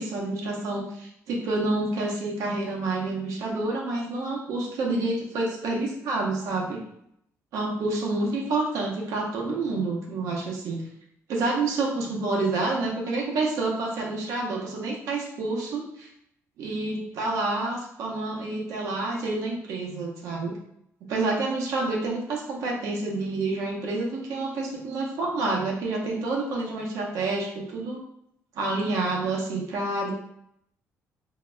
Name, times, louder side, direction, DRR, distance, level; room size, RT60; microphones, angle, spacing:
voice 1, 0.0-6.8 7.5-10.8 11.3-16.1 16.6-20.5 21.1-28.0 28.5-30.1, right 2 dB, 80° right, -1 dB, 0.8 m, -28 dB
3.8 x 2.2 x 2.5 m, 0.75 s
cardioid pair, 180°, 6 cm